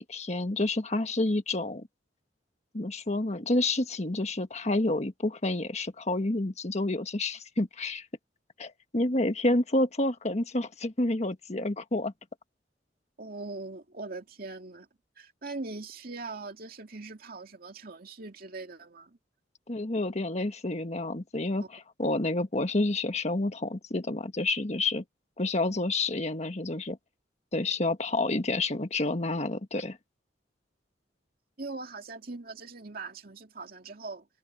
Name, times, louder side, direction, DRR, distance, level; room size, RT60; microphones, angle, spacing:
voice 1, 0.0-1.9 2.7-8.0 8.6-12.1 19.7-25.0 25.4-27.0 27.5-30.0, left 2 dB, 40° left, 1.4 m, -29 dB
voice 2, 13.2-14.9 15.2-19.2 21.6-21.7 31.6-34.3, right 3 dB, 55° right, 2.3 m, -41 dB
head